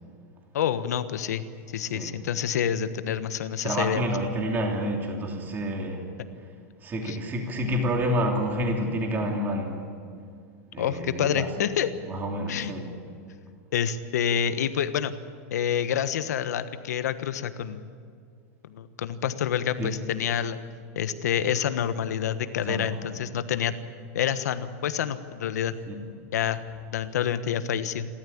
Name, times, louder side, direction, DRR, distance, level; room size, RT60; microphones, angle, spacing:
voice 1, 0.5-1.4 1.7-4.0 7.1-7.2 10.8-11.9 12.5-12.7 13.7-15.1 15.5-17.9 18.7-20.6 20.9-23.7 24.1-25.7 26.3-26.6 26.9-28.1, left 9 dB, 85° left, 11 dB, 1.3 m, -27 dB
voice 2, 3.6-6.1 6.8-9.9 10.7-11.5 12.1-12.9 19.8-20.0 22.7-22.9 25.9-26.0, equal, 20° right, 1 dB, 2.9 m, -29 dB
27.5 x 13.5 x 8.7 m, 2.2 s
supercardioid pair, 140°, 9 cm